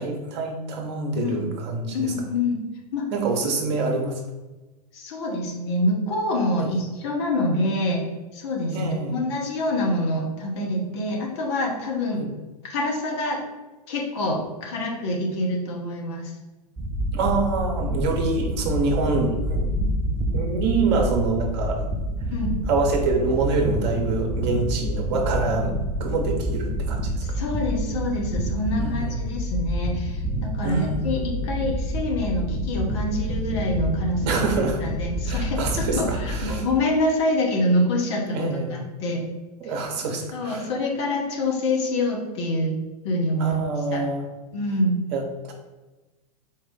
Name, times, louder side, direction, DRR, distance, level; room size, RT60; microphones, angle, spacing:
voice 1, 0.0-2.1 3.1-4.2 6.6-6.7 8.7-9.1 12.2-12.3 17.1-19.7 20.3-21.8 22.7-25.7 26.0-27.2 28.8-29.1 30.6-31.3 34.3-34.8 35.3-36.6 38.3-38.8 39.6-40.6 43.4-44.2 45.1-45.5, right 3 dB, 40° right, 1 dB, 0.8 m, -26 dB
voice 2, 1.1-1.5 1.9-2.6 2.9-3.1 4.9-8.0 8.3-12.2 12.7-13.4 13.9-16.3 22.3-22.6 27.2-34.4 34.8-39.2 39.6-39.7 40.3-42.8 43.0-43.6 43.9-44.0 44.5-45.0, left 1 dB, 40° left, 0 dB, 0.9 m, -26 dB
sound 1, 16.8-36.6, right 1 dB, 10° right, 0.5 m, -28 dB
4.1 x 2.4 x 3.7 m, 1.1 s
figure-of-eight pair, 100°, 21 cm